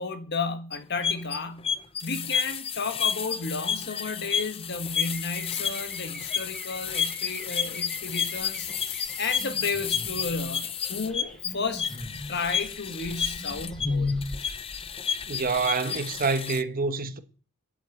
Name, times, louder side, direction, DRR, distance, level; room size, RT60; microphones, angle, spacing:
voice 1, 0.0-1.7 2.0-8.7 9.2-11.9 12.3-14.2, left 4 dB, 50° left, 1.6 m, -33 dB
sound 1, 0.7-16.6, left 7 dB, 25° left, 0.5 m, -31 dB
sound 2, 4.9-14.8, left 2 dB, 5° left, 1.8 m, -38 dB
voice 2, 15.3-17.2, right 4 dB, 40° right, 1.1 m, -27 dB
12.0 x 7.9 x 8.5 m
head